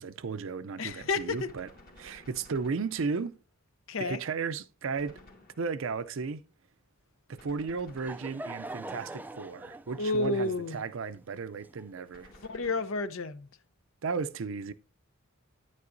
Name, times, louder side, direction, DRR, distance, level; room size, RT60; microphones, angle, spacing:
voice 1, 0.0-1.7 2.0-3.4 4.0-5.2 5.6-6.5 7.3-12.3 14.0-14.7, right 5 dB, 65° right, 0.5 m, -34 dB
voice 2, 0.8-1.5 3.9-4.2 10.0-10.8 12.5-13.5, left 3 dB, 70° left, 0.7 m, -30 dB
Gunshot gunfire, 0.9-3.4 5.0-6.0 7.4-8.8 10.1-10.9 12.1-13.3, left 1 dB, 45° left, 2.0 m, -56 dB
Laughter / Crowd, 7.6-12.3, right 2 dB, 10° right, 0.3 m, -44 dB
9.6 x 9.6 x 2.6 m
head